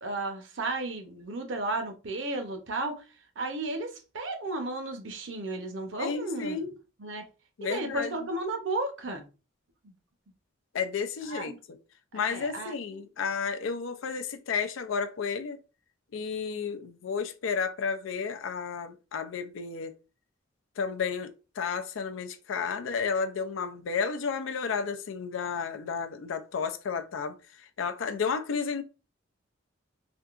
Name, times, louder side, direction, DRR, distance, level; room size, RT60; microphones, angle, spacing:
voice 1, 0.0-3.0 3.4-3.9 4.1-6.7 7.0-7.2 7.6-9.3 9.8-9.9 11.3-11.6 12.1-13.0, right 2 dB, 70° right, 0.8 m, -34 dB
voice 2, 6.0-6.7 7.6-8.1 10.7-11.8 12.1-15.6 16.1-19.9 20.8-27.3 27.8-28.8, left 5 dB, 90° left, 0.4 m, -32 dB
3.5 x 2.7 x 2.4 m
head